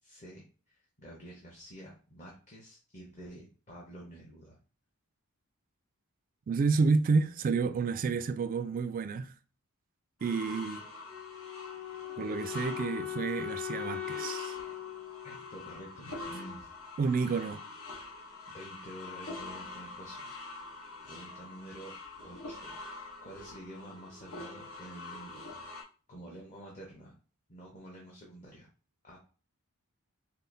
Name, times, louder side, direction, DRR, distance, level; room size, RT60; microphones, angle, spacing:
voice 1, 0.0-4.5 15.2-16.7 18.5-20.3 21.0-22.0 22.2-22.7 23.2-25.4 26.1-27.1 27.5-28.7 29.0-29.2, right 1 dB, 35° left, 0.9 m, -49 dB
voice 2, 6.5-9.3 10.2-10.8 12.2-14.5 17.0-17.6, right 4 dB, 40° right, 0.3 m, -30 dB
sound 1, 10.2-25.8, left 2 dB, 70° left, 1.0 m, -45 dB
Wind instrument woodwind instrument, 11.1-16.1, left 12 dB, 5° left, 0.6 m, -40 dB
5.3 x 2.0 x 2.6 m
head